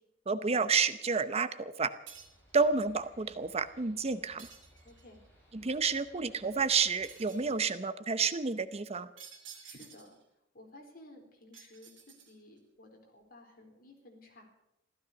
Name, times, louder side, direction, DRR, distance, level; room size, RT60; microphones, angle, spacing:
voice 1, 0.3-1.9 2.5-4.5 5.5-9.1, right 5 dB, 35° right, 12 dB, 0.7 m, -30 dB
sound 1, 2.1-7.6, equal, 10° left, 7.7 m, -62 dB
sound 2, 2.1-2.5 4.4-5.2 7.0-7.6 9.2-10.2 11.5-12.6, right 7 dB, 75° right, 2.8 m, -52 dB
voice 2, 4.8-5.2 9.6-10.2 10.5-11.9 12.2-14.6, left 1 dB, 50° left, 2 dB, 4.1 m, -55 dB
15.5 x 13.5 x 6.9 m, 0.83 s
head